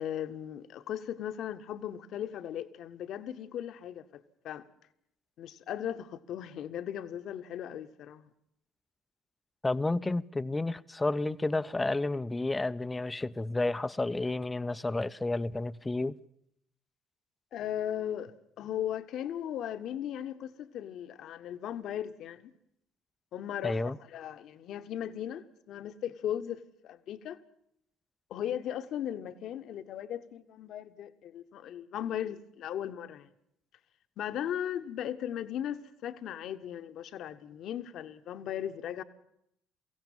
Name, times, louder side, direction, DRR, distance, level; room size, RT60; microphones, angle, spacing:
voice 1, 0.0-4.6 5.4-8.3 17.5-22.5 23.3-27.4 28.3-33.3 34.2-39.0, left 10 dB, 50° left, 1.2 m, -37 dB
voice 2, 9.6-16.2 23.6-24.0, left 2 dB, 15° left, 0.7 m, -31 dB
23.0 x 16.5 x 7.4 m
figure-of-eight pair, 50°, 0 cm